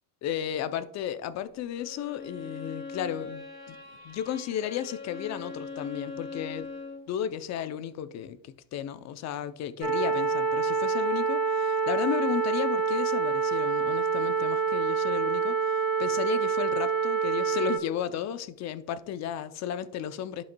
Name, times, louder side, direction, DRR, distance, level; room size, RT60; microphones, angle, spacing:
voice 1, 0.2-3.8 4.0-6.7 7.1-20.4, left 9 dB, 45° left, 0.6 m, -34 dB
Bowed string instrument, 1.7-7.1, left 4 dB, 25° left, 1.6 m, -41 dB
sound 1, 9.8-17.8, right 5 dB, 35° right, 2.6 m, -26 dB
11.5 x 5.4 x 2.3 m
supercardioid pair, 120°, 40 cm